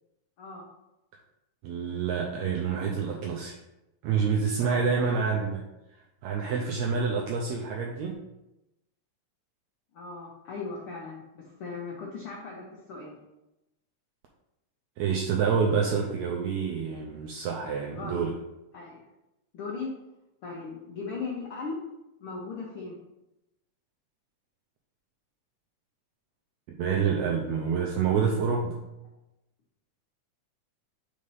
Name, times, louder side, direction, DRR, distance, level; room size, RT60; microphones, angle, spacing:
voice 1, 1.6-3.6 4.0-5.6 6.2-8.1 15.0-18.3 26.8-28.8, right 6 dB, 80° right, 0 dB, 1.7 m, -27 dB
voice 2, 4.6-5.2 9.9-13.1 17.9-18.2 18.7-19.0 19.5-19.9 20.4-21.8 22.2-23.0, left 4 dB, 85° left, -2 dB, 1.2 m, -38 dB
5.1 x 4.3 x 5.5 m, 0.93 s
omnidirectional pair, 3.7 m